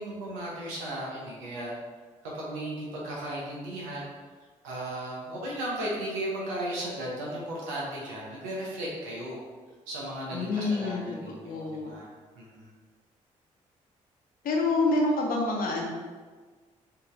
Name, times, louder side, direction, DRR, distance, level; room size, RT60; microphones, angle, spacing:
voice 1, 0.0-1.7 2.2-4.1 4.6-9.4 9.9-12.1 12.3-12.7, right 1 dB, 80° right, -4 dB, 0.9 m, -35 dB
voice 2, 10.3-11.0 11.3-11.9 14.4-15.9, left 2 dB, 60° left, 0 dB, 1.0 m, -27 dB
6.7 x 2.8 x 2.5 m, 1.5 s
hypercardioid pair, 40°, 17 cm